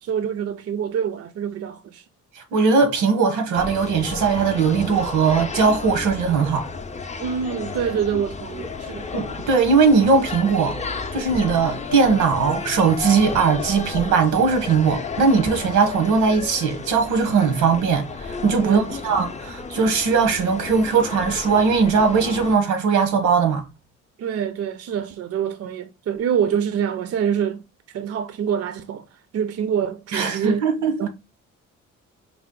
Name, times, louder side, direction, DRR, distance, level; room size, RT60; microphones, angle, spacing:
voice 1, 0.0-2.0 7.2-9.1 18.6-18.9 24.2-27.6 27.9-29.1 29.3-30.6 31.0-31.1, right 8 dB, 55° right, 0.5 m, -25 dB
voice 2, 2.4-6.7 9.1-10.8 11.1-23.6 30.1-30.9, right 5 dB, 90° right, 1.0 m, -19 dB
sound 1, 3.5-22.6, left 4 dB, 25° left, 0.5 m, -32 dB
4.4 x 2.0 x 3.7 m
cardioid pair, 90°, 30 cm